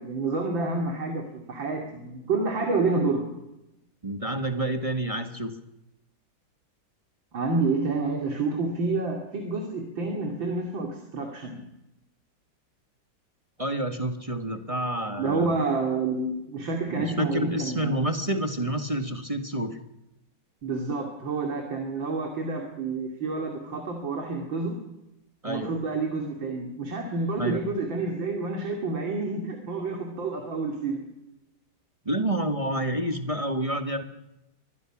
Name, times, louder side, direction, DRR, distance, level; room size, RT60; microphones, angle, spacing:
voice 1, 0.0-3.3 7.3-11.6 15.2-18.0 20.6-24.8 25.5-31.0, right 3 dB, 75° right, 2 dB, 3.4 m, -29 dB
voice 2, 4.0-5.5 13.6-15.6 16.9-19.8 25.4-25.8 27.4-27.6 32.0-34.0, right 1 dB, 20° right, 6 dB, 1.3 m, -28 dB
25.0 x 20.5 x 6.0 m, 0.89 s
omnidirectional pair, 2.1 m